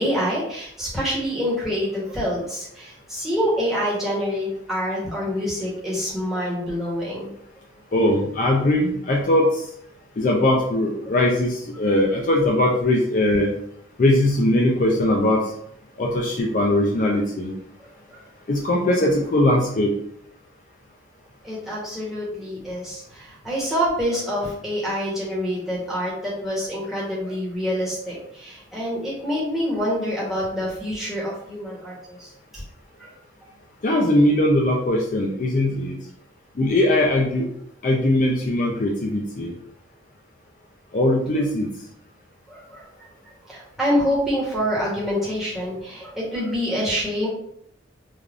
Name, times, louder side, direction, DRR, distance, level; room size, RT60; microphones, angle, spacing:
voice 1, 0.0-7.3 11.1-11.2 18.1-18.2 21.4-32.6 33.0-33.1 42.5-42.8 43.5-47.3, equal, ahead, -8 dB, 1.0 m, -26 dB
voice 2, 7.9-9.6 10.2-13.5 14.0-15.4 16.0-17.5 18.5-19.9 33.8-36.0 36.6-37.5 37.8-39.5 40.9-41.7, left 1 dB, 40° left, -1 dB, 0.4 m, -20 dB
3.3 x 2.3 x 2.4 m, 0.70 s
head